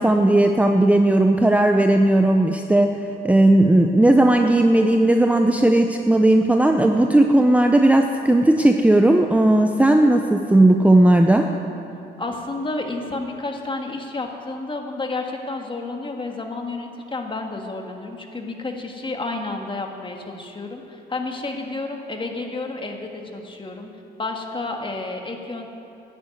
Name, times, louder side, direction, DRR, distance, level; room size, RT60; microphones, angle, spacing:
voice 1, 0.0-2.9 3.2-11.5, right 1 dB, 5° right, 4 dB, 0.7 m, -16 dB
voice 2, 12.2-23.9 24.2-25.7, left 3 dB, 25° left, 3 dB, 1.8 m, -30 dB
11.5 x 9.0 x 9.2 m, 2.7 s
cardioid pair, 90°, 20 cm